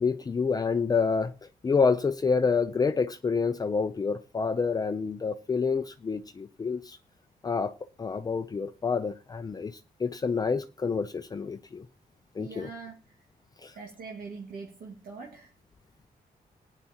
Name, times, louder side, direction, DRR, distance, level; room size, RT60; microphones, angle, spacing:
voice 1, 0.0-1.3 1.6-7.0 7.4-7.7 8.0-11.8 12.4-12.7 13.6-13.8, left 5 dB, 25° left, 0.5 m, -28 dB
voice 2, 12.4-13.2 13.7-15.5, right 4 dB, 65° right, 1.9 m, -43 dB
18.5 x 9.9 x 2.9 m
wide cardioid pair, 145°, 15 cm